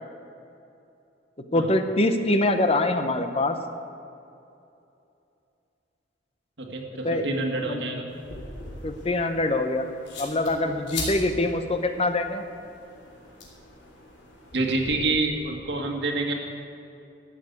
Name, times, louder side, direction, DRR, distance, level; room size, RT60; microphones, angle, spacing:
voice 1, 1.5-3.6 7.0-7.3 7.6-7.8 8.8-9.8 10.2-12.4, left 2 dB, 35° left, 7 dB, 0.8 m, -24 dB
voice 2, 6.6-8.1 14.5-16.3, right 2 dB, 70° right, 1 dB, 1.9 m, -27 dB
sound 1, 8.1-14.9, left 2 dB, 85° left, 3.4 m, -40 dB
13.5 x 7.5 x 8.1 m, 2.7 s
head